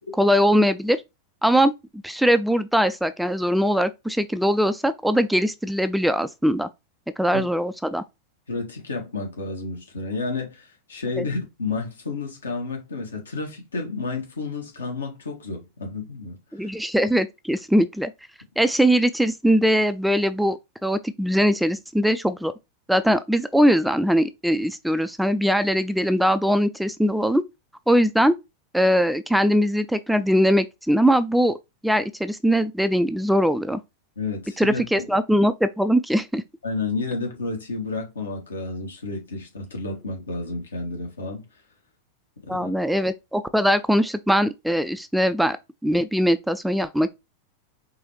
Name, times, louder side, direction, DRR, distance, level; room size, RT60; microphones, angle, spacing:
voice 1, 0.2-1.0 1.4-1.7 2.0-6.7 7.2-8.0 11.2-11.3 16.5-18.1 18.6-22.5 22.9-27.4 27.9-28.4 28.7-31.6 31.8-33.8 34.6-36.4 42.5-45.6 45.8-47.1, equal, ahead, 0.3 m, -21 dB
voice 2, 8.5-16.7 34.2-35.1 36.6-41.4 42.4-42.7, left 3 dB, 70° left, 1.6 m, -31 dB
4.7 x 3.3 x 3.1 m
figure-of-eight pair, 90°, 0 cm